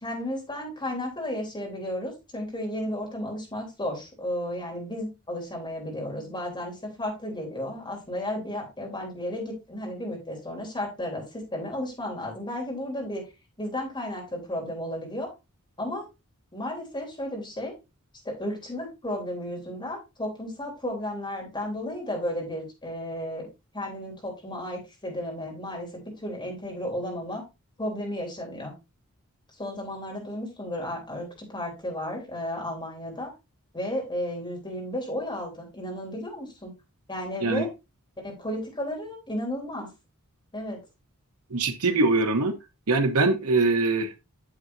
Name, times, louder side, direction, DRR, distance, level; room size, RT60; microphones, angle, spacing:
voice 1, 0.0-13.2 13.6-15.3 15.8-16.1 16.5-17.7 18.2-23.5 23.7-27.4 27.8-28.7 29.6-33.3 33.7-36.7 37.1-37.7 38.2-39.9 40.5-40.8, left 1 dB, 20° left, -1 dB, 3.4 m, -33 dB
voice 2, 41.5-42.5 42.9-44.2, right 3 dB, 75° right, 5 dB, 1.0 m, -23 dB
8.6 x 7.4 x 2.7 m, 0.25 s
head